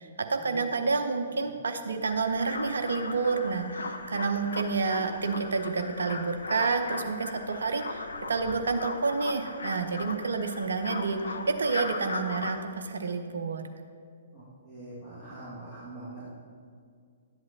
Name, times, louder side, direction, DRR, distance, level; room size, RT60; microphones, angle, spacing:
voice 1, 0.0-8.0 8.3-13.6, right 4 dB, 65° right, 6 dB, 0.7 m, -29 dB
sound 1, 2.1-12.6, left 3 dB, 70° left, 0.6 m, -38 dB
voice 2, 14.3-16.3, right 2 dB, ahead, -13 dB, 1.8 m, -43 dB
11.5 x 7.8 x 2.8 m, 2.3 s
figure-of-eight pair, 120°, 0 cm